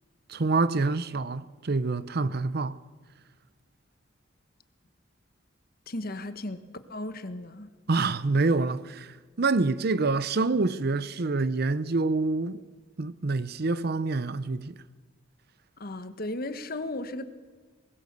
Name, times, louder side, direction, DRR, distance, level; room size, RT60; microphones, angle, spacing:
voice 1, 0.3-2.8 7.9-12.6 13.0-14.7, right 3 dB, 55° right, 0.7 m, -26 dB
voice 2, 5.9-6.6 6.9-7.7 15.8-17.2, left 1 dB, 50° left, 1.3 m, -35 dB
23.5 x 20.0 x 6.8 m
head